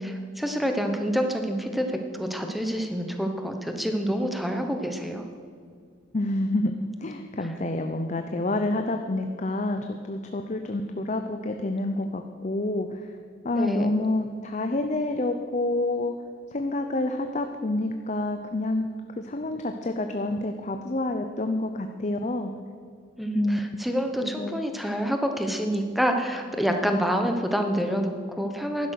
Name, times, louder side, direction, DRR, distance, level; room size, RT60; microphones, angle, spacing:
voice 1, 0.0-5.2 13.5-14.0 23.2-28.9, equal, ahead, 5 dB, 0.9 m, -27 dB
voice 2, 6.1-13.2 13.4-16.1 16.5-18.9 19.1-22.5 23.3-23.6 24.2-24.6, left 2 dB, 35° left, 6 dB, 0.6 m, -28 dB
11.5 x 11.0 x 6.4 m, 2.2 s
head